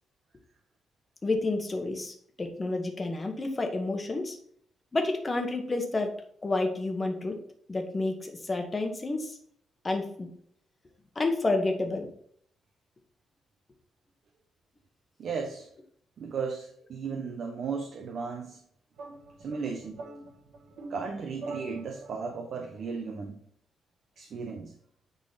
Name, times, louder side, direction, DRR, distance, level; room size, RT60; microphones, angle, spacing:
voice 1, 1.2-4.4 4.9-6.1 6.4-7.4 7.7-9.3 9.8-10.3 11.1-12.1, left 2 dB, 20° left, 4 dB, 1.2 m, -30 dB
voice 2, 15.2-15.7 16.2-18.6 19.4-20.0 20.9-23.4 24.2-24.7, right 5 dB, 55° right, 3 dB, 1.0 m, -35 dB
sound 1, 18.9-22.4, right 3 dB, 75° right, 1.4 m, -44 dB
9.5 x 3.9 x 4.1 m, 0.64 s
cardioid pair, 135°, 0 cm